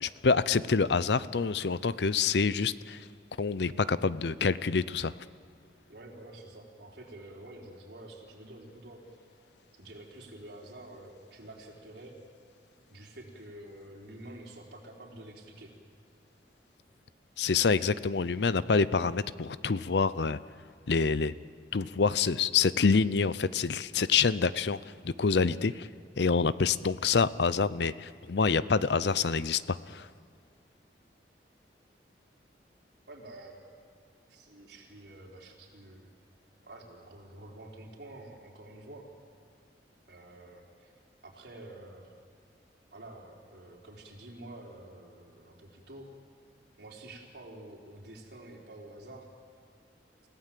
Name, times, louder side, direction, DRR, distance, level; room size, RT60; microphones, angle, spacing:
voice 1, 0.0-3.0 3.4-5.1 17.4-20.4 20.9-21.3 21.7-24.8 25.0-25.9 26.2-30.1, left 5 dB, 70° left, 17 dB, 0.6 m, -27 dB
voice 2, 5.9-9.0 9.7-12.2 12.9-15.7 33.1-33.6 34.3-36.1 36.6-39.1 40.1-40.9 41.2-42.1 42.9-46.1 46.8-49.3, right 1 dB, 70° right, -1 dB, 4.1 m, -48 dB
28.5 x 17.0 x 7.6 m, 2.3 s
head